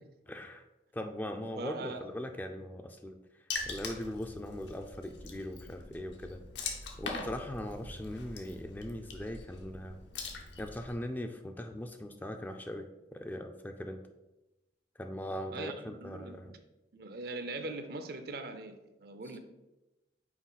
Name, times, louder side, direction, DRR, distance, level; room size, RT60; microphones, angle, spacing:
voice 1, 0.3-0.6 0.9-3.2 3.7-6.4 7.0-10.0 10.6-14.0 15.0-16.5, left 1 dB, 10° left, 5 dB, 0.3 m, -40 dB
voice 2, 1.6-2.0 15.5-16.6 16.9-19.4, right 2 dB, 60° right, 8 dB, 0.6 m, -41 dB
Water / Splash splatter, 3.5-10.9, left 3 dB, 85° left, 0.9 m, -42 dB
6.0 x 4.5 x 4.1 m, 1.0 s
head